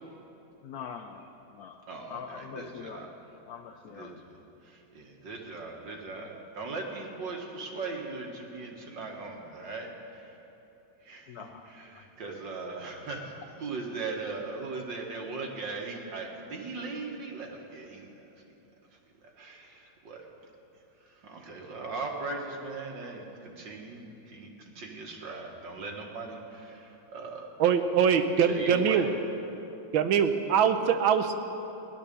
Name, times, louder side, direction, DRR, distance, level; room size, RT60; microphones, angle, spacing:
voice 1, 0.6-1.2 1.5-1.8 2.1-3.1 3.5-4.2 11.3-12.0, left 7 dB, 65° left, 5 dB, 1.0 m, -43 dB
voice 2, 1.9-3.1 3.8-10.3 11.0-18.3 19.4-20.2 21.1-27.5 28.0-28.1 28.4-29.1, right 3 dB, 65° right, 0 dB, 2.3 m, -39 dB
voice 3, 27.6-29.1 29.9-31.3, right 7 dB, 85° right, 8 dB, 1.6 m, -23 dB
17.0 x 11.5 x 6.8 m, 3.0 s
omnidirectional pair, 2.1 m